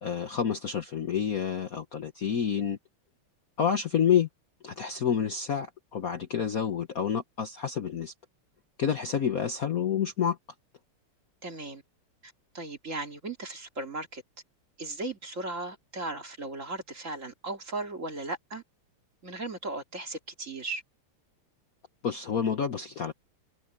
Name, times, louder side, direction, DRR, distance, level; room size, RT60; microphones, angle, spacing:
voice 1, 0.0-2.8 3.6-4.3 4.6-8.1 8.8-10.4 22.0-23.1, left 8 dB, 50° left, 1.2 m, -28 dB
voice 2, 11.4-11.8 12.2-14.2 14.8-18.6 19.2-20.8, right 2 dB, 35° right, 2.6 m, -37 dB
omnidirectional pair, 2.4 m